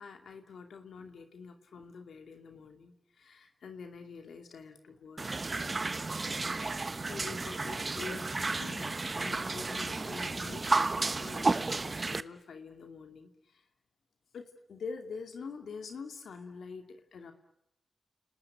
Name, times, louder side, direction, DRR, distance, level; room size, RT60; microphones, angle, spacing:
voice 1, 0.0-5.3 5.6-6.1 6.4-13.6 14.3-17.3, left 5 dB, 85° left, 5 dB, 2.5 m, -46 dB
sound 1, 5.2-12.2, right 3 dB, 45° right, 1.1 m, -32 dB
30.0 x 19.5 x 9.3 m, 0.83 s
cardioid pair, 50°, 0 cm